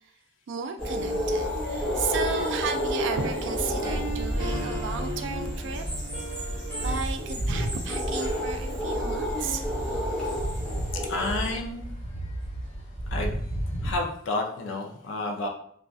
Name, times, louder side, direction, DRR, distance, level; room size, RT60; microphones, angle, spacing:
voice 1, 0.5-5.9 6.8-9.7, right 5 dB, 70° right, 7 dB, 0.3 m, -34 dB
sound 1, 0.8-11.5, equal, 5° left, 0.6 m, -30 dB
sound 2, 0.9-7.0, right 1 dB, 25° right, 1.2 m, -38 dB
sound 3, 1.1-2.8 3.4-3.6 4.3-4.9 5.2-5.3 5.5-5.6 5.8-14.0, right 1 dB, 40° left, 1.3 m, -34 dB
voice 2, 10.9-11.9 13.1-13.3 13.8-15.5, left 2 dB, 80° left, 1 dB, 0.4 m, -30 dB
2.4 x 2.3 x 2.4 m, 0.64 s
head